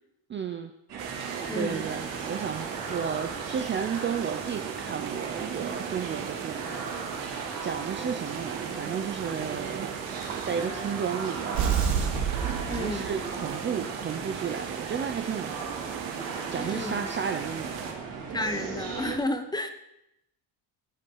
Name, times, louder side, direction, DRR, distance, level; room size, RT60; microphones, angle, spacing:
voice 1, 0.3-0.7 1.1-6.7 7.1-9.9 10.4-11.8 12.4-15.8 16.2-17.9, right 7 dB, 25° right, 6 dB, 0.5 m, -33 dB
sound 1, 0.9-19.2, right 5 dB, 45° right, 4.1 m, -37 dB
sound 2, 1.0-17.9, right 7 dB, 65° right, 2.2 m, -39 dB
voice 2, 1.5-1.9 12.7-13.1 16.5-17.1 18.3-19.7, left 1 dB, 10° left, 7 dB, 0.8 m, -32 dB
sound 3, 11.5-13.4, right 7 dB, 90° right, 3.0 m, -28 dB
16.5 x 8.7 x 4.7 m, 0.82 s
cardioid pair, 175°, 47 cm